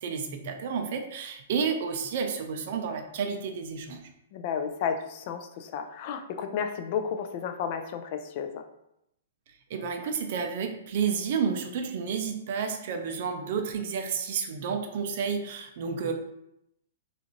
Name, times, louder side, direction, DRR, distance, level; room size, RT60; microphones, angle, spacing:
voice 1, 0.0-4.0 9.7-16.1, right 6 dB, 60° right, 5 dB, 0.4 m, -31 dB
voice 2, 4.3-8.6, left 7 dB, 50° left, 6 dB, 0.3 m, -32 dB
2.4 x 2.4 x 3.0 m, 0.80 s
hypercardioid pair, 130°, 0 cm